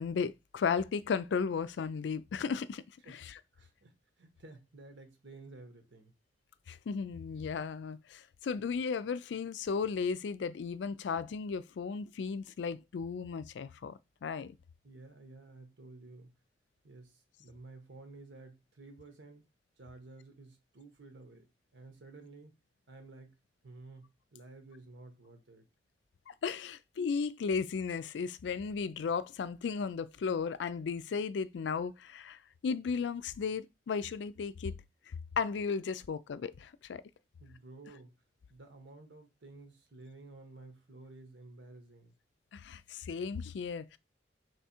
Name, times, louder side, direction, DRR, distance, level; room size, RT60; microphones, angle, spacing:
voice 1, 0.0-3.3 6.7-14.6 26.3-34.8 35.1-37.0 42.5-44.0, left 5 dB, 70° left, 0.3 m, -35 dB
voice 2, 3.5-6.1 14.8-16.4 16.8-19.5 19.8-21.5 21.7-22.6 22.9-23.4 23.6-25.7 37.4-38.2 38.5-42.1, right 2 dB, 80° right, 1.2 m, -53 dB
3.5 x 3.3 x 4.3 m
head